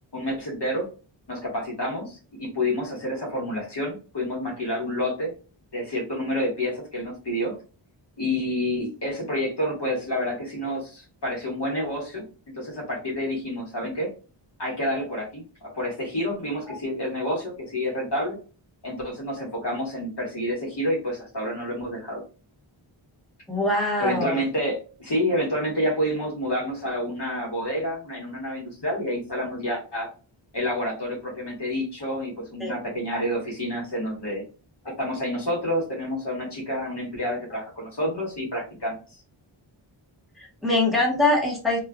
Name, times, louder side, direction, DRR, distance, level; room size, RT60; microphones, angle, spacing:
voice 1, 0.1-0.9 1.3-5.3 5.7-7.5 8.2-12.2 12.5-14.1 14.6-18.4 18.8-22.2 24.0-30.1 30.5-34.4 35.0-39.0, equal, 55° left, -3 dB, 1.7 m, -28 dB
voice 2, 23.5-24.4 32.6-32.7 40.4-41.8, left 2 dB, ahead, -4 dB, 1.5 m, -23 dB
3.1 x 3.1 x 2.4 m, 0.35 s
wide cardioid pair, 75°, 48 cm